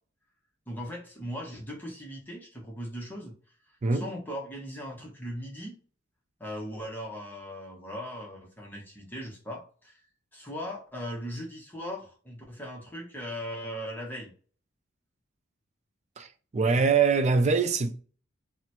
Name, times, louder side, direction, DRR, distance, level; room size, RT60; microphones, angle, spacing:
voice 1, 0.7-3.4 3.9-5.8 6.4-10.0 10.3-14.3, equal, 10° left, 0.8 m, -38 dB
voice 2, 16.5-18.0, right 4 dB, 35° right, 0.4 m, -23 dB
3.0 x 2.1 x 4.1 m
head